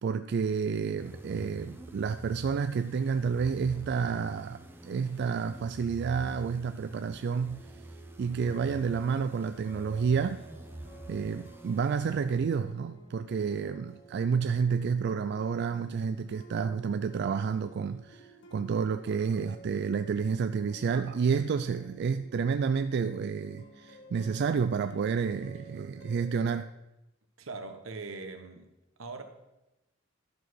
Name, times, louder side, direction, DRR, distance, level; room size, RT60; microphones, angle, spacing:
voice 1, 0.0-7.7 8.2-10.4 11.1-26.7, right 6 dB, 55° right, 10 dB, 0.3 m, -30 dB
sound 1, 1.0-12.7, right 1 dB, 10° right, 0.8 m, -47 dB
sound 2, 7.4-26.6, right 3 dB, 60° left, 1.9 m, -53 dB
voice 2, 27.4-28.7 29.0-29.2, right 3 dB, 85° right, 7 dB, 1.1 m, -41 dB
11.5 x 4.8 x 6.1 m, 0.96 s
head